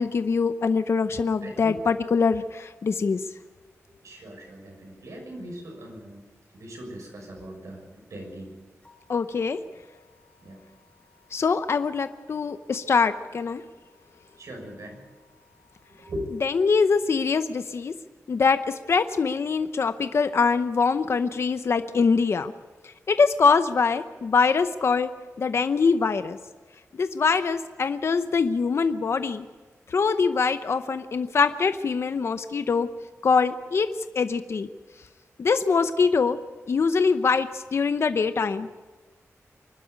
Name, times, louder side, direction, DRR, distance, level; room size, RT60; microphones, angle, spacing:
voice 1, 0.0-3.2 9.1-9.6 11.3-13.6 16.4-17.9 18.3-22.5 23.1-25.1 25.4-26.4 26.9-29.4 29.9-32.9 33.2-33.9 34.1-34.7 35.4-36.4 36.7-38.9, left 5 dB, 55° left, 10 dB, 0.7 m, -23 dB
voice 2, 1.4-1.8 3.9-6.2 6.5-8.5 10.4-10.6 14.4-15.0 15.9-16.3, equal, 85° right, 1 dB, 6.5 m, -40 dB
sound 1, 8.8-16.1, left 6 dB, 20° left, 2.4 m, -63 dB
24.0 x 12.0 x 9.5 m, 1.3 s
wide cardioid pair, 175°, 5 cm